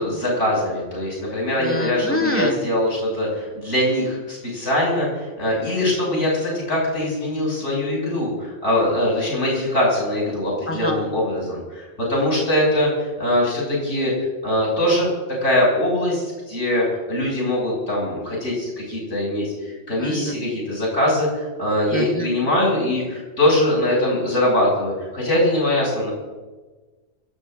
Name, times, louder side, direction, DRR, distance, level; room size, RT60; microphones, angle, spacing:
voice 1, 0.0-14.1 14.4-15.1 15.4-26.1, left 1 dB, 90° left, -4 dB, 6.5 m, -22 dB
voice 2, 1.6-2.6 10.7-11.0 20.0-20.3 21.9-22.3, left 2 dB, 10° left, 6 dB, 1.6 m, -26 dB
26.5 x 17.0 x 2.5 m, 1.3 s
omnidirectional pair, 1.2 m